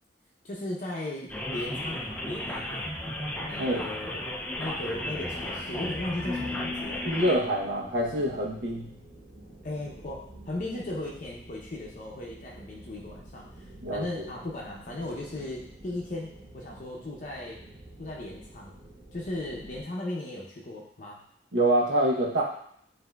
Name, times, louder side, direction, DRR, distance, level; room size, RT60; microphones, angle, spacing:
voice 1, 0.4-2.9 3.5-7.0 9.6-17.6 18.0-18.8 19.1-21.2, left 1 dB, 45° left, -3 dB, 0.6 m, -37 dB
sound 1, 1.3-7.4, left 1 dB, 5° left, 0.4 m, -34 dB
sound 2, 1.3-19.8, right 1 dB, 30° right, 1.2 m, -49 dB
Marimba xylophone, 6.2-8.4, left 3 dB, 50° right, 0.7 m, -39 dB
voice 2, 7.0-8.9 13.8-14.3 21.5-22.4, right 1 dB, 80° right, -3 dB, 0.9 m, -26 dB
7.6 x 2.6 x 2.3 m, 0.67 s
head